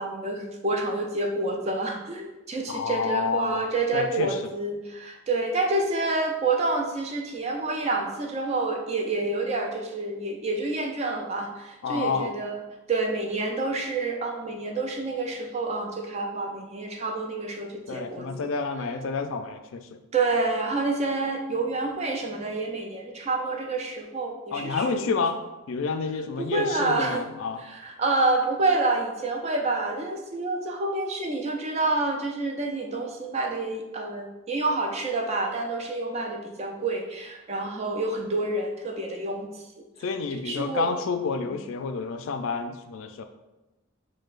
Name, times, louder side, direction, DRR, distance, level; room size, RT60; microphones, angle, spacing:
voice 1, 0.0-18.3 20.1-25.1 26.4-27.2 27.6-39.6 40.4-40.9 41.4-41.6, right 2 dB, 30° right, 2 dB, 0.4 m, -28 dB
voice 2, 2.7-3.6 3.9-4.4 11.8-12.3 17.9-20.0 24.5-25.4 25.7-27.6 40.0-43.2, left 4 dB, 65° left, 7 dB, 0.3 m, -29 dB
6.4 x 2.1 x 2.4 m, 1.0 s
head